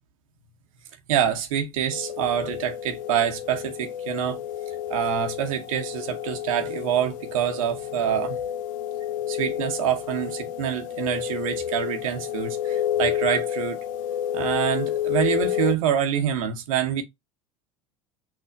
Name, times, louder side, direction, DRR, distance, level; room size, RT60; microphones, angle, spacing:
voice 1, 1.1-4.4 4.9-8.4 9.3-13.8 14.3-17.0, right 9 dB, 75° right, 0.8 m, -26 dB
sound 1, 1.9-15.8, left 10 dB, 70° left, 0.4 m, -30 dB
5.8 x 2.7 x 2.5 m
hypercardioid pair, 80°, 18 cm